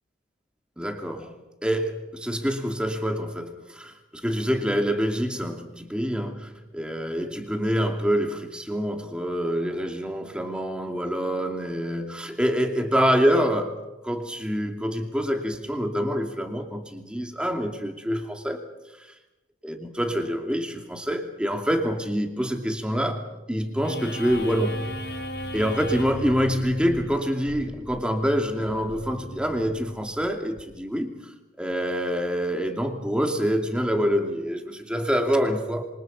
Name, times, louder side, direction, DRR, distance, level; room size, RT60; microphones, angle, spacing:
voice 1, 0.8-1.3 1.6-13.8 14.0-18.6 19.6-24.8 25.5-31.3 31.6-35.8, equal, 5° right, 4 dB, 2.7 m, -26 dB
sound 1, 23.8-30.6, equal, 60° left, 4.9 m, -37 dB
27.5 x 25.0 x 5.6 m, 1.0 s
head